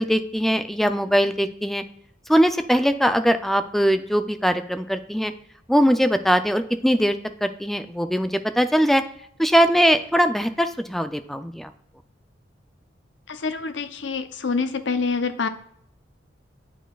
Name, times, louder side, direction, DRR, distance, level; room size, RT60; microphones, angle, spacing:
voice 1, 0.0-1.8 2.3-5.3 5.7-9.0 9.4-11.7, equal, ahead, 9 dB, 0.4 m, -21 dB
voice 2, 13.3-15.5, left 4 dB, 70° left, 10 dB, 0.6 m, -26 dB
9.0 x 4.6 x 2.3 m, 0.66 s
head